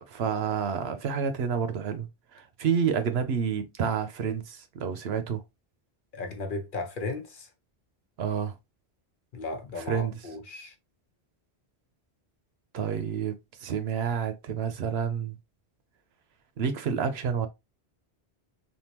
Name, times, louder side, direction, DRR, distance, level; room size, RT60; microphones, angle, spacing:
voice 1, 0.1-5.4 8.2-8.6 9.8-10.2 12.7-15.4 16.6-17.5, right 7 dB, 75° right, 0.9 m, -29 dB
voice 2, 6.1-7.5 9.3-10.7, left 3 dB, 55° left, 0.9 m, -35 dB
3.6 x 2.6 x 2.9 m
omnidirectional pair, 1.1 m